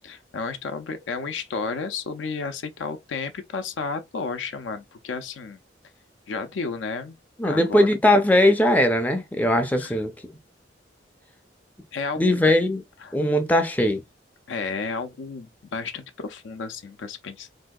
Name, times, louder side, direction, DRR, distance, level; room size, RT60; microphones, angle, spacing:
voice 1, 0.0-5.6 6.3-7.2 7.4-7.9 9.8-10.0 11.9-12.4 13.0-13.1 14.5-17.5, left 4 dB, 80° left, 0.5 m, -32 dB
voice 2, 7.4-10.1 12.2-12.8 13.1-14.0, left 1 dB, 10° left, 0.4 m, -20 dB
3.4 x 2.6 x 2.2 m
head